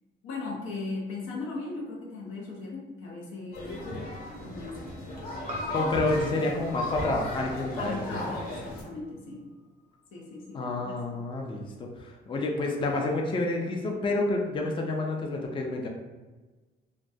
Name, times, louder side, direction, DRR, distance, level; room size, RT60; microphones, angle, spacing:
voice 1, 0.2-4.0 4.4-5.0 7.8-9.5 10.1-11.2, left 3 dB, 85° left, -3 dB, 0.5 m, -38 dB
sound 1, 3.5-8.8, left 1 dB, 50° left, 0.7 m, -36 dB
Piano, 5.5-10.0 10.3-10.4, left 3 dB, 40° right, 0.4 m, -43 dB
voice 2, 5.7-8.2 10.5-11.7 12.0-15.9, left 2 dB, 25° left, 1 dB, 0.4 m, -29 dB
2.3 x 2.2 x 2.6 m, 1.3 s
cardioid pair, 90°, 20 cm